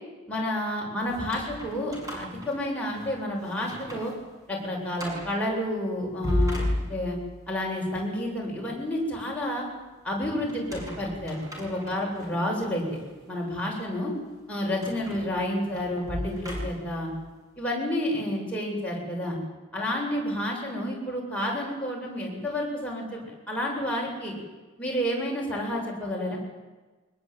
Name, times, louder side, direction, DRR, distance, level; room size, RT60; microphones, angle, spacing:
voice 1, 0.3-4.1 4.5-7.2 7.5-9.6 10.0-12.8 13.3-14.1 14.5-17.1 17.6-19.4 19.7-24.3 24.8-26.4, left 1 dB, 5° left, -3 dB, 8.0 m, -30 dB
sound 1, 1.1-3.2 3.6-4.1 4.5-4.6 5.0-5.4 6.0-7.3 10.5-12.3 12.9-13.0 14.8-17.0, left 1 dB, 15° right, 6.6 m, -33 dB
24.0 x 20.5 x 9.1 m, 1.3 s
head